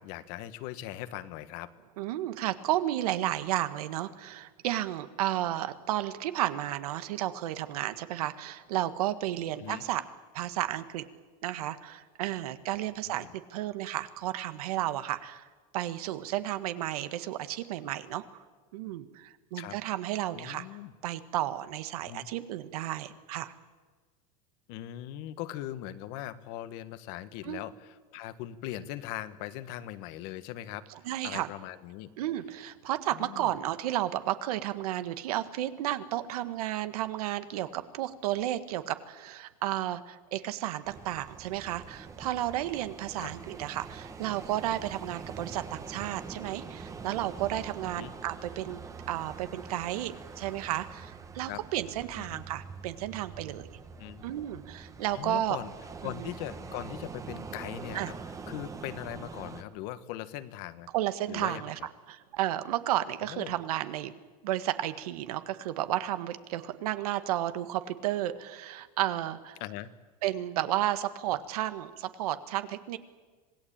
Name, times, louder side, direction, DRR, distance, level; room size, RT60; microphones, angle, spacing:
voice 1, 0.0-1.7 9.6-9.8 13.1-13.3 19.6-19.8 20.3-20.9 22.0-22.3 24.7-30.9 31.2-32.1 33.1-33.5 43.2-43.3 47.9-48.1 51.5-51.6 52.1-52.4 54.0-54.3 55.1-55.7 56.0-58.1 58.5-60.9 61.3-61.9 63.2-63.5 69.6-69.9, left 13 dB, 55° left, 12 dB, 1.5 m, -40 dB
voice 2, 2.0-10.0 10.3-11.0 11.4-15.4 15.7-18.4 18.7-20.7 21.0-23.5 27.4-27.6 31.0-31.5 32.2-48.8 49.1-53.6 54.2-55.6 56.0-56.3 57.9-58.1 60.9-61.8 62.1-64.1 64.4-69.6 70.2-73.0, right 13 dB, 85° right, 11 dB, 1.7 m, -32 dB
sound 1, 40.8-59.6, right 5 dB, 15° right, 1.4 m, -44 dB
26.5 x 18.5 x 8.8 m, 1.4 s
supercardioid pair, 150°, 19 cm